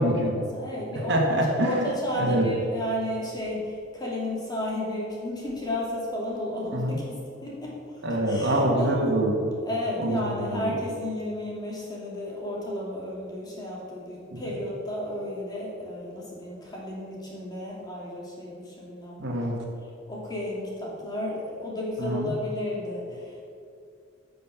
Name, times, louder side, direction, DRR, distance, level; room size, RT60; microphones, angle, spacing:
voice 1, 0.0-0.4 1.1-1.9 2.2-2.4 6.7-7.0 8.0-9.5 10.0-10.2 10.5-10.7 14.3-14.4 19.2-19.6 22.0-22.3, right 1 dB, 60° right, 0 dB, 1.7 m, -25 dB
voice 2, 0.5-7.0 7.4-7.8 8.3-9.0 9.7-19.4 20.1-23.4, left 1 dB, 20° left, -4 dB, 2.6 m, -32 dB
15.0 x 5.5 x 5.8 m, 2.4 s
head